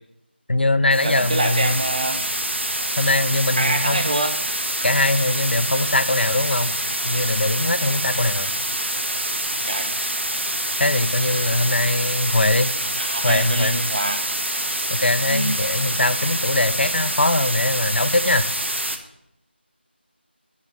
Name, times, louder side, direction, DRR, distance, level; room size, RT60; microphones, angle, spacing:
voice 1, 0.5-1.8 3.0-4.1 4.8-6.7 7.0-8.5 10.8-12.8 13.2-13.8 14.9-18.5, left 2 dB, 65° left, 13 dB, 0.6 m, -21 dB
sound 1, 0.9-19.0, right 1 dB, 85° right, 1.2 m, -26 dB
voice 2, 1.0-2.2 3.6-4.3 9.7-9.9 13.0-14.2 15.3-15.5, right 2 dB, 40° right, 6 dB, 1.0 m, -25 dB
7.2 x 6.1 x 6.5 m, 0.79 s
figure-of-eight pair, 165°, 6 cm